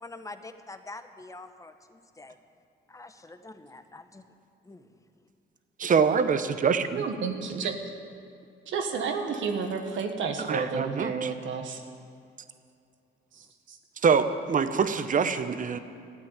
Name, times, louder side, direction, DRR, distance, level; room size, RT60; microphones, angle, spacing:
voice 1, 0.0-2.3 2.9-4.2 4.7-4.8, left 2 dB, 15° left, 9 dB, 0.9 m, -45 dB
voice 2, 5.8-7.0 10.4-11.3 14.0-15.8, right 6 dB, 40° right, 11 dB, 0.9 m, -25 dB
voice 3, 6.9-7.7 8.7-11.8 13.4-13.8, right 5 dB, 75° right, 4 dB, 1.5 m, -31 dB
13.0 x 8.8 x 8.7 m, 2.5 s
cardioid pair, 90°, 20 cm